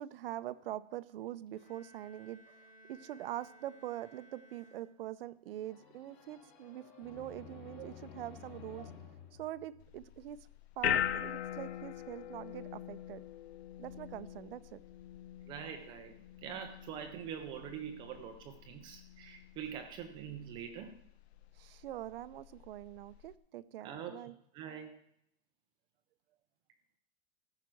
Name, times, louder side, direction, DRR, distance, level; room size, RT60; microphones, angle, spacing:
voice 1, 0.0-2.6 2.9-8.9 9.4-10.4 10.8-13.3 13.8-14.8 21.6-24.3, right 13 dB, 65° right, 15 dB, 0.7 m, -44 dB
Bowed string instrument, 1.5-5.3, right 1 dB, 30° left, 2.2 m, -60 dB
sound 1, 5.6-10.4, left 7 dB, 45° left, 2.5 m, -53 dB
sound 2, 9.8-23.3, left 10 dB, 90° left, 1.0 m, -42 dB
voice 2, 15.4-21.0 23.8-24.2 24.5-25.0, right 8 dB, 15° right, 6 dB, 0.4 m, -44 dB
14.0 x 5.8 x 7.6 m, 0.72 s
supercardioid pair, 175°, 31 cm